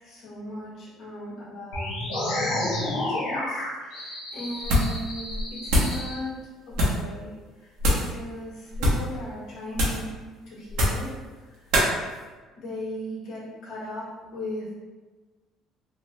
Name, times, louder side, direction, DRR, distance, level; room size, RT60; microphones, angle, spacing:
voice 1, 0.0-2.6 2.8-6.3 6.7-7.3 7.6-10.1 10.5-11.1 12.6-14.7, left 1 dB, 65° left, -7 dB, 1.3 m, -37 dB
sound 1, 1.7-6.1, left 1 dB, 90° left, 0.8 m, -30 dB
sound 2, 4.6-5.0 5.3-6.0 6.7-7.1 7.8-8.1 8.7-9.1 9.7-10.1 10.7-11.1 11.7-11.9, equal, 85° right, 0.8 m, -23 dB
3.1 x 2.1 x 3.2 m, 1.3 s
cardioid pair, 130°, 0 cm